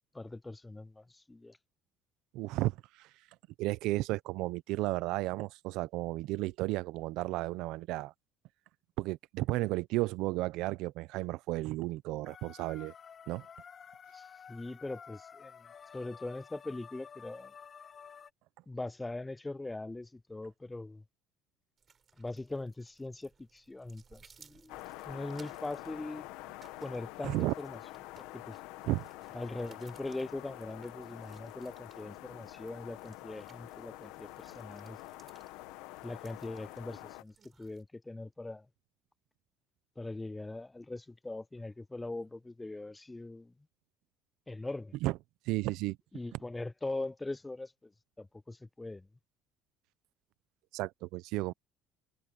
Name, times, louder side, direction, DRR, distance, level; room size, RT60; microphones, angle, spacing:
voice 1, 0.1-1.6 14.1-15.5 15.9-17.5 18.7-21.0 22.2-24.8 25.1-26.3 26.8-27.8 28.2-28.6 29.3-35.0 36.0-38.7 40.0-43.5 44.5-44.9 46.1-47.9 48.2-49.1, left 2 dB, 10° left, 0.4 m, -41 dB
voice 2, 2.3-3.1 3.6-8.1 9.0-12.9 13.3-13.5 27.2-27.5 28.9-29.1 45.0-45.1 45.5-46.0 50.7-51.5, right 18 dB, 75° right, 0.7 m, -33 dB
sound 1, 12.2-18.3, left 7 dB, 35° left, 1.7 m, -52 dB
sound 2, 21.8-37.8, right 6 dB, 35° right, 7.9 m, -63 dB
sound 3, 24.7-37.2, left 18 dB, 85° left, 1.4 m, -47 dB
cardioid pair, 115°, 0 cm